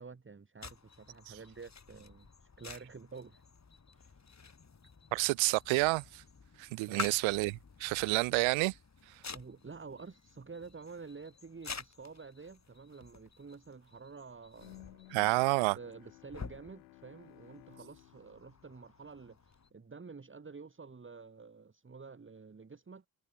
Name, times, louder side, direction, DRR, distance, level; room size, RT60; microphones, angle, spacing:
voice 1, 0.0-3.4 3.9-4.2 6.9-7.2 9.3-15.1 15.4-23.1, right 4 dB, 25° right, 1.9 m, -50 dB
sound 1, 0.6-19.7, left 5 dB, 35° left, 3.3 m, -50 dB
voice 2, 5.1-6.2 6.6-8.7 15.1-15.8, right 24 dB, 70° right, 0.6 m, -29 dB
Bowed string instrument, 14.6-19.6, left 22 dB, 85° left, 1.1 m, -57 dB
hypercardioid pair, 45°, 50 cm